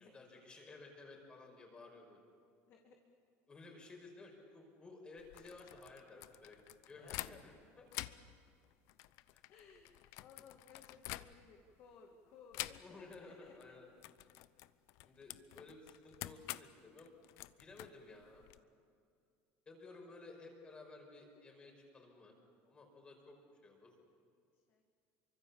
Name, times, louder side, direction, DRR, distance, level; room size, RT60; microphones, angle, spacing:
voice 1, 0.0-2.2 3.5-7.9 9.3-9.4 12.8-13.9 15.0-17.1 17.6-18.4 19.7-22.4 22.6-23.4 23.6-23.9, left 3 dB, 20° left, 2 dB, 5.4 m, -55 dB
voice 2, 2.7-3.2 7.0-7.6 8.1-8.2 9.5-13.7 15.0-15.1 24.7-24.8, left 5 dB, 45° left, 1 dB, 2.3 m, -60 dB
sound 1, 5.2-7.6 7.9-11.7 12.5-13.2 13.5-13.7 14.0-18.6, left 17 dB, 65° left, 0.8 m, -48 dB
27.5 x 24.5 x 7.2 m, 2.3 s
cardioid pair, 160°, 5 cm